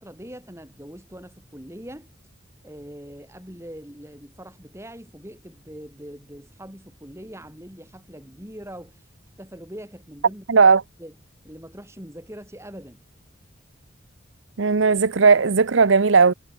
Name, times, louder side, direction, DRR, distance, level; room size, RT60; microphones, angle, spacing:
voice 1, 0.0-2.1 2.6-9.0 9.4-10.7 11.0-11.1 11.4-13.0, equal, 15° right, 5.6 m, -42 dB
voice 2, 10.5-10.8 14.6-16.3, right 5 dB, 75° right, 0.8 m, -16 dB
head